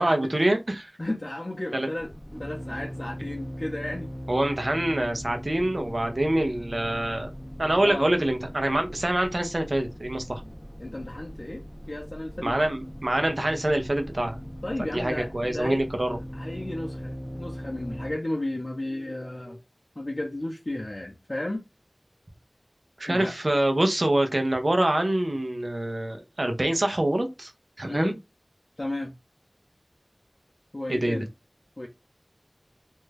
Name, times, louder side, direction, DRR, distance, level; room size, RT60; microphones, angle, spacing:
voice 1, 0.0-0.9 1.7-1.9 4.3-7.3 7.6-10.4 12.4-14.4 14.9-16.2 23.0-27.5 27.8-28.1 30.9-31.2, right 1 dB, 60° right, 0.7 m, -25 dB
voice 2, 1.0-2.1 2.4-4.1 7.8-8.1 10.8-12.6 14.6-15.8 16.3-19.6 20.0-21.6 23.1-23.3 27.9-28.2 28.8-29.1 30.7-31.3 31.8-31.9, left 1 dB, 50° left, 0.6 m, -33 dB
sound 1, 2.0-18.2, equal, 5° right, 0.6 m, -40 dB
2.6 x 2.3 x 3.2 m
wide cardioid pair, 45°, 0 cm